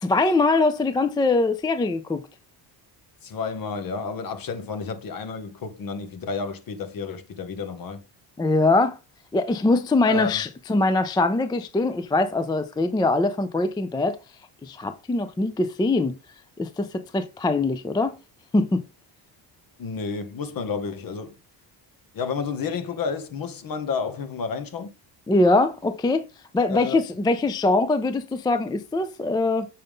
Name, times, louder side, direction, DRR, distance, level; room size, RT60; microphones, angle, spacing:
voice 1, 0.0-2.2 8.4-8.9 9.3-14.2 14.6-16.1 16.6-18.1 18.5-18.8 25.3-26.2 26.5-29.7, left 2 dB, 10° left, 0.3 m, -22 dB
voice 2, 3.2-8.0 10.0-10.4 19.8-21.3 22.1-24.9 26.7-27.0, left 5 dB, 50° left, 1.3 m, -31 dB
6.8 x 5.2 x 3.5 m
cardioid pair, 140°, 45 cm